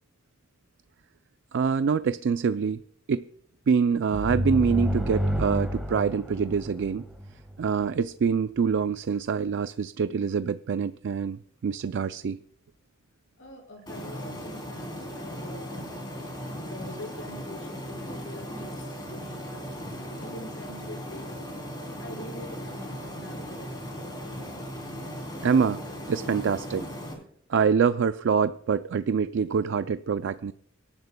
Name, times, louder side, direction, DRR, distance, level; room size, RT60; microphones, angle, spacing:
voice 1, 1.5-3.2 3.7-7.1 7.6-12.4 25.4-25.8 26.1-26.9 27.5-30.5, right 6 dB, 60° right, 0.4 m, -25 dB
sound 1, 4.1-7.7, equal, 5° right, 1.4 m, -30 dB
voice 2, 13.4-16.2 16.5-19.7 20.2-21.5 22.0-23.8, left 1 dB, 70° left, 5.3 m, -45 dB
sound 2, 13.9-27.1, equal, 20° left, 3.3 m, -37 dB
24.5 x 10.5 x 2.2 m
head